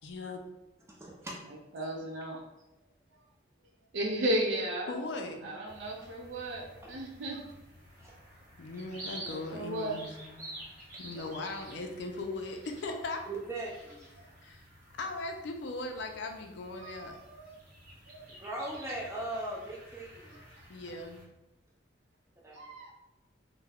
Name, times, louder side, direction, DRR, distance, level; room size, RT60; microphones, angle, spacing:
voice 1, 0.0-0.4 4.9-5.5 8.6-10.5 11.0-13.2 14.4-14.6 15.0-17.2 20.7-21.3, left 2 dB, 75° left, 4 dB, 0.4 m, -39 dB
voice 2, 0.9-1.4 6.8-6.9 8.0-8.2 11.1-11.2 11.8-11.9 13.3-14.1 18.4-20.4 22.4-22.7, right 1 dB, 15° right, -2 dB, 0.4 m, -39 dB
voice 3, 1.7-2.4 3.9-5.0 5.4-7.4 9.2-10.0 16.7-17.6 18.1-18.3 20.3-20.4 22.5-22.9, right 1 dB, 80° right, -1 dB, 0.4 m, -35 dB
sound 1, 5.6-21.2, right 1 dB, 45° right, 0.7 m, -51 dB
2.3 x 2.0 x 3.4 m, 0.99 s
head